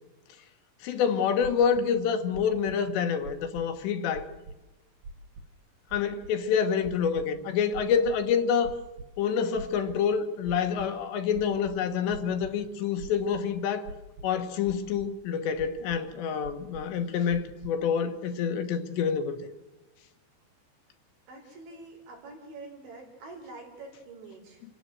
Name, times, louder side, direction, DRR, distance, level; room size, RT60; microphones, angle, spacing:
voice 1, 0.8-4.3 5.9-8.7 9.2-13.9 14.2-19.4, left 7 dB, 75° left, 3.5 m, -27 dB
sound 1, 1.4-1.8 2.3-2.8 3.2-3.8 4.1-4.6 5.0-5.5 5.9-6.3 6.8-7.3 7.7-8.3 8.6-9.1 9.5-10.1 10.4-10.9 11.3-12.5 13.0-13.4 13.9-14.4 14.7-15.1 15.5-16.0 16.4-17.0 17.3-17.7, right 3 dB, 55° right, 4.0 m, -43 dB
voice 2, 21.3-24.7, right 3 dB, 90° right, 7.0 m, -46 dB
27.5 x 16.0 x 7.8 m
omnidirectional pair, 5.2 m